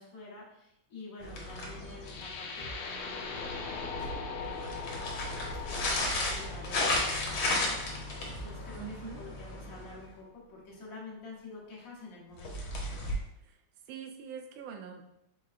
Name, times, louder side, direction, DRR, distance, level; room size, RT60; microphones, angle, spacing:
voice 1, 0.0-5.3 5.8-12.7, left 2 dB, 50° left, -4 dB, 1.2 m, -49 dB
sound 1, 1.2-2.4 4.5-10.1 12.4-13.1, left 2 dB, 70° left, 1.6 m, -34 dB
sound 2, 2.0-10.1, left 3 dB, 90° left, 1.5 m, -41 dB
sound 3, 2.6-2.8 4.0-4.2 5.4-5.6 6.8-7.0 8.3-8.5, right 1 dB, 50° right, 0.6 m, -44 dB
voice 2, 8.7-9.2 13.4-13.6 13.9-15.0, right 7 dB, 75° right, 4 dB, 1.3 m, -43 dB
4.7 x 3.6 x 2.4 m, 0.82 s
omnidirectional pair, 2.4 m